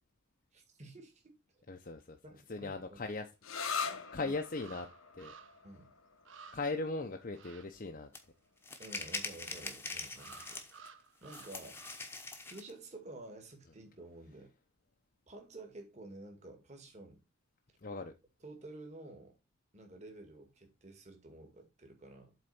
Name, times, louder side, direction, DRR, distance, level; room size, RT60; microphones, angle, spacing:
voice 1, 0.5-1.6 2.2-3.0 4.2-4.3 5.6-5.9 8.8-10.6 11.2-11.8 12.5-14.5 15.3-17.2 18.4-19.4 19.7-22.3, right 2 dB, 30° right, 2.0 m, -51 dB
voice 2, 1.7-2.2 2.5-3.3 3.6-4.9 5.1-5.4 6.5-8.1 17.8-18.1, left 3 dB, 40° left, 0.7 m, -39 dB
sound 1, 3.4-10.8, left 5 dB, 70° left, 1.0 m, -44 dB
sound 2, 3.7-3.8 4.6-5.7 6.0-6.1 6.3-6.9 7.3-7.7 10.2-12.2 12.4-12.7, right 6 dB, 60° right, 0.8 m, -55 dB
sound 3, 8.1-8.2 8.6-10.9 11.3-12.7, left 3 dB, 10° left, 1.0 m, -43 dB
7.8 x 4.0 x 5.5 m
head